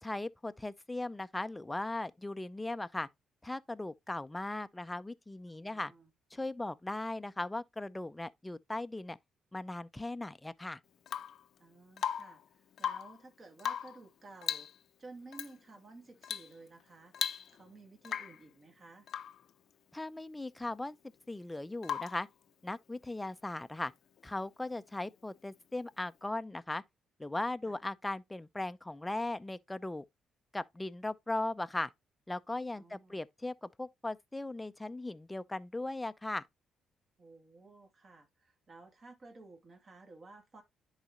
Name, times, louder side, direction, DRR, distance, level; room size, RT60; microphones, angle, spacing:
voice 1, 0.0-3.1 3.4-5.9 6.3-9.2 9.5-10.8 19.9-21.0 21.3-22.3 22.6-23.9 24.2-26.8 27.2-30.0 30.5-31.9 32.3-36.4, left 2 dB, 10° left, 0.5 m, -38 dB
voice 2, 5.5-6.1 11.6-14.7 15.0-17.1 17.5-19.1 27.6-27.8 32.7-33.2 37.2-40.6, right 3 dB, 40° right, 2.4 m, -54 dB
Rain / Water tap faucet / Drip, 11.1-11.4 12.0-12.4 12.7-13.2 13.6-14.0 14.4-14.8 15.3-15.5 16.2-16.5 16.8-16.9 17.1-17.7 18.0-18.4 19.1-19.4 21.8-22.3 24.2-24.3, left 9 dB, 65° left, 0.6 m, -37 dB
10.5 x 4.1 x 3.0 m
cardioid pair, 90°, 0 cm